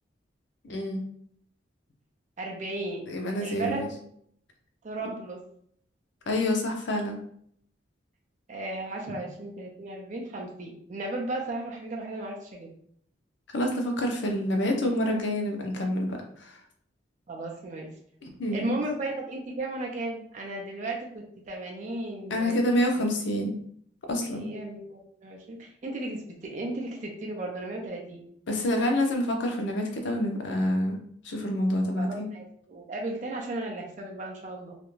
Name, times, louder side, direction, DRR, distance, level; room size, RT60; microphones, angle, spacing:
voice 1, 0.6-1.0 3.1-3.9 6.3-7.2 9.1-9.2 13.5-16.6 18.2-18.6 22.3-23.5 24.1-24.5 28.5-31.0 31.2-32.3, left 1 dB, 75° left, 2 dB, 0.6 m, -27 dB
voice 2, 2.4-3.1 3.4-3.8 4.8-5.4 8.5-12.7 17.3-17.9 18.5-22.6 22.9-23.1 24.3-28.2 32.0-34.7, right 2 dB, 40° right, 0 dB, 0.4 m, -35 dB
2.4 x 2.1 x 3.0 m, 0.64 s
head